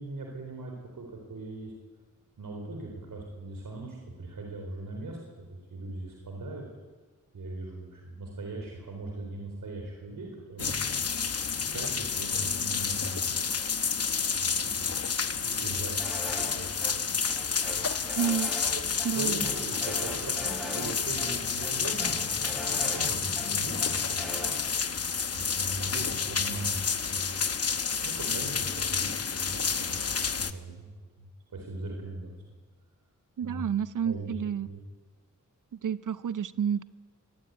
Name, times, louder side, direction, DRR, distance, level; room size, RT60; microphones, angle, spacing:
voice 1, 0.0-1.7 2.4-6.7 7.3-10.7 11.7-13.4 14.3-16.2 16.5-17.0 17.6-17.7 18.7-18.8 19.1-24.4 25.3-27.5 28.0-30.9 31.2-32.3 33.4-33.7 34.0-34.8, right 2 dB, 90° right, 1 dB, 4.1 m, -40 dB
sound 1, 10.6-30.5, left 6 dB, 50° left, 1.0 m, -30 dB
sound 2, 16.0-16.9 17.3-18.7 19.0-19.1 19.4-20.9 21.2-21.3 21.6-23.5 23.8-24.6, equal, ahead, 6.4 m, -40 dB
voice 2, 18.1-18.5 19.0-19.4 33.4-34.7 35.8-36.8, right 8 dB, 70° right, 15 dB, 0.6 m, -29 dB
22.0 x 16.5 x 9.3 m, 1.3 s
wide cardioid pair, 100°, 32 cm